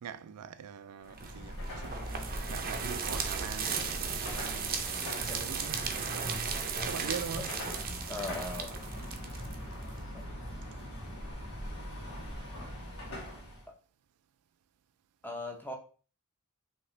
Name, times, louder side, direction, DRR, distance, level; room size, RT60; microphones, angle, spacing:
voice 1, 0.0-2.0 2.5-6.5 6.8-7.5, right 7 dB, 85° right, 0.4 m, -43 dB
Car passing by / Traffic noise roadway noise / Engine, 1.0-13.7, equal, 80° left, 1.9 m, -41 dB
sound 1, 1.2-10.0, right 6 dB, 40° right, 0.6 m, -36 dB
voice 2, 4.8-5.5 6.5-6.6 8.1-8.7 10.1-10.2 15.2-15.8, left 2 dB, 10° left, 0.7 m, -40 dB
5.1 x 2.9 x 3.2 m
head